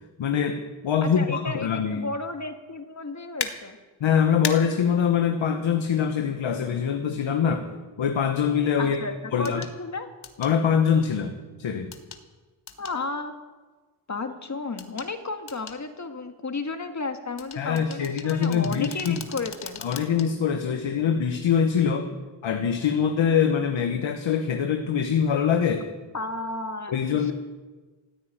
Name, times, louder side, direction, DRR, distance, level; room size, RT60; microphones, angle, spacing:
voice 1, 0.2-2.0 4.0-7.7 8.0-9.0 9.3-9.6 10.4-11.9 17.6-19.2 19.8-22.1 22.4-25.9 26.9-27.3, left 7 dB, 70° left, 5 dB, 1.5 m, -24 dB
voice 2, 1.0-3.8 8.8-10.1 12.8-13.4 14.1-19.8 26.1-27.3, left 3 dB, 35° left, 6 dB, 1.9 m, -33 dB
sound 1, 3.4-3.5 4.4-4.6 6.6-6.7 9.4-9.7 10.2-10.5 11.9-12.2 12.7-13.0 14.8-15.1 15.5-15.8 17.4-20.3 20.7-20.8, left 6 dB, 55° left, 1.8 m, -36 dB
15.5 x 9.4 x 9.1 m, 1.3 s
cardioid pair, 70°, 48 cm